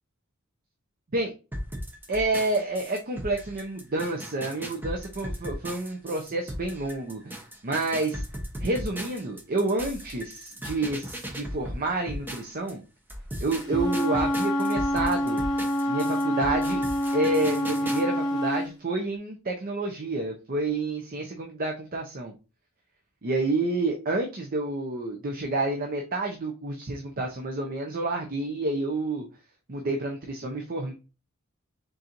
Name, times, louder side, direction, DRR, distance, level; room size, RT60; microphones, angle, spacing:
sound 1, 1.5-12.7 13.1-18.0, equal, 10° right, 0.8 m, -37 dB
voice 1, 2.1-7.4 7.6-8.2 8.6-12.8 13.4-15.4 15.9-16.8 17.1-22.3 23.2-29.3 29.7-30.9, right 2 dB, 45° right, 2 dB, 0.6 m, -29 dB
Wind instrument woodwind instrument, 13.6-18.7, equal, 20° left, 1.3 m, -26 dB
4.3 x 3.9 x 2.5 m, 0.31 s
head